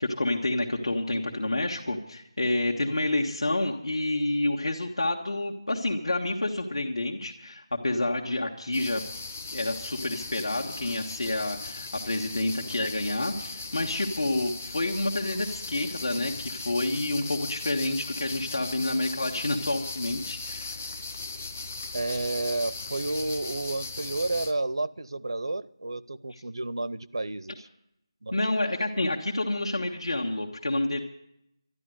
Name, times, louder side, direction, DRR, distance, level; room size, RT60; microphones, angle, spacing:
voice 1, 0.0-9.0 9.5-20.8 28.3-31.0, left 2 dB, 75° left, 0 dB, 1.6 m, -29 dB
sound 1, 8.7-24.5, left 3 dB, 15° left, 0.5 m, -38 dB
voice 2, 21.9-27.7 28.2-28.5, right 2 dB, 60° right, 16 dB, 0.5 m, -31 dB
12.5 x 11.0 x 7.8 m, 0.77 s
figure-of-eight pair, 180°, 3 cm